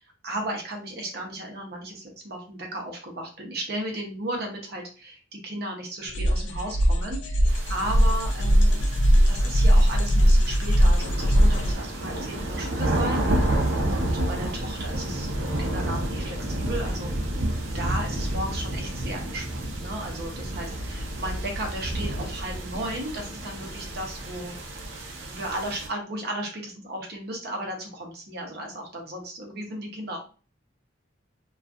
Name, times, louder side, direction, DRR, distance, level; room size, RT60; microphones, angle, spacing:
voice 1, 0.0-13.2 13.8-17.1 17.7-24.5 25.3-30.2, right 1 dB, 55° right, 1 dB, 0.7 m, -35 dB
sound 1, 6.1-11.7, equal, 65° left, 0.4 m, -20 dB
sound 2, 7.5-25.9, right 1 dB, 90° right, 0.6 m, -30 dB
2.5 x 2.3 x 2.3 m, 0.37 s
head